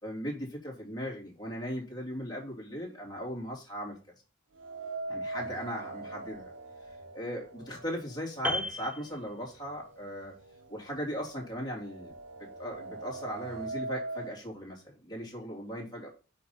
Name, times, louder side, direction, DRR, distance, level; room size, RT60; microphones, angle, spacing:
voice 1, 0.0-4.0 5.1-6.5 7.1-10.3 10.7-12.1 12.6-16.1, equal, 20° left, -2 dB, 3.0 m, -38 dB
sound 1, 4.6-8.6 9.0-9.1 10.0-10.1 10.5-14.4, right 3 dB, 75° right, 0.7 m, -41 dB
Piano, 8.4-9.9 10.2-10.4, equal, 5° right, 0.9 m, -35 dB
7.5 x 5.6 x 4.3 m, 0.35 s
head